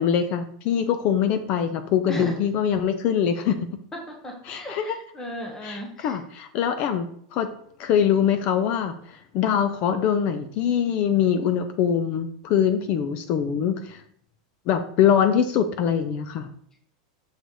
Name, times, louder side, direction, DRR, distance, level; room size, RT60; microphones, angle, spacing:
voice 1, 0.0-3.7 4.4-5.0 5.6-7.1 7.3-7.5 7.8-14.0 14.7-16.5, left 8 dB, 40° left, 10 dB, 0.5 m, -23 dB
voice 2, 4.1-6.2, equal, 15° left, 1 dB, 0.9 m, -35 dB
6.5 x 4.0 x 4.7 m, 0.63 s
supercardioid pair, 150°, 4 cm